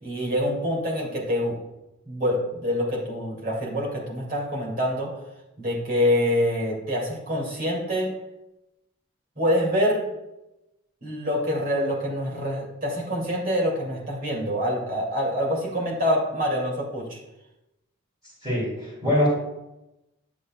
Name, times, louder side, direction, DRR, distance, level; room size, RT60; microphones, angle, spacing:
voice 1, 0.0-1.6 2.1-5.1 5.6-8.1 9.4-10.0 11.0-17.2, equal, 40° right, -3 dB, 2.4 m, -26 dB
voice 2, 18.4-19.3, left 1 dB, 20° right, -8 dB, 3.1 m, -23 dB
9.8 x 8.1 x 2.3 m, 0.95 s
head